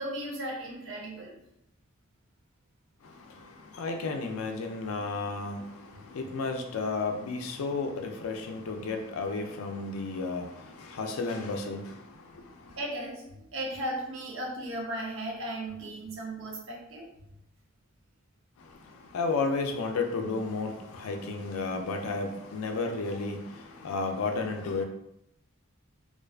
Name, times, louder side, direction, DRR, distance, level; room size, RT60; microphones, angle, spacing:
voice 1, 0.0-1.4 5.9-6.2 12.7-17.1, right 1 dB, 65° right, 0.7 m, -36 dB
voice 2, 3.7-5.6 6.1-11.9 19.1-24.8, left 3 dB, 80° left, 0.4 m, -32 dB
2.4 x 2.2 x 2.3 m
head